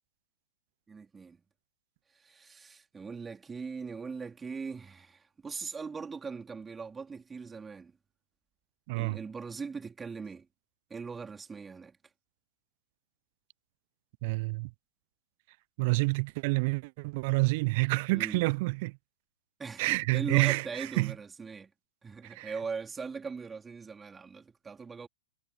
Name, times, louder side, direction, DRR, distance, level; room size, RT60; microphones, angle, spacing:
voice 1, 0.9-1.4 2.1-7.9 9.0-10.5 10.9-12.0 18.1-18.4 19.6-21.7 22.0-25.1, right 5 dB, 15° right, 3.8 m, -40 dB
voice 2, 8.9-9.2 14.2-14.7 15.8-18.9 19.8-21.1 22.2-22.5, right 26 dB, 45° right, 0.5 m, -28 dB
hypercardioid pair, 110°, 0 cm